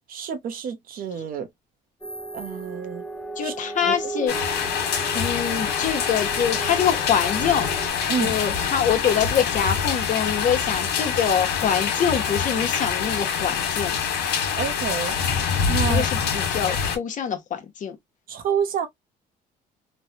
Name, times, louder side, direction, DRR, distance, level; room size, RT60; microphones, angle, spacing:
voice 1, 0.1-1.5 2.3-3.0 3.4-3.5 3.8-4.3 8.1-8.3 14.6-15.2 15.7-16.1 18.3-18.9, right 7 dB, 60° right, 0.8 m, -28 dB
sound 1, 2.0-7.9, right 2 dB, 5° left, 0.6 m, -35 dB
voice 2, 3.4-4.3 5.1-7.7 8.2-14.0 15.9-18.0, left 8 dB, 50° left, 0.9 m, -25 dB
sound 2, 4.3-17.0, left 7 dB, 75° left, 1.3 m, -25 dB
3.2 x 2.2 x 2.7 m
cardioid pair, 110°, 17 cm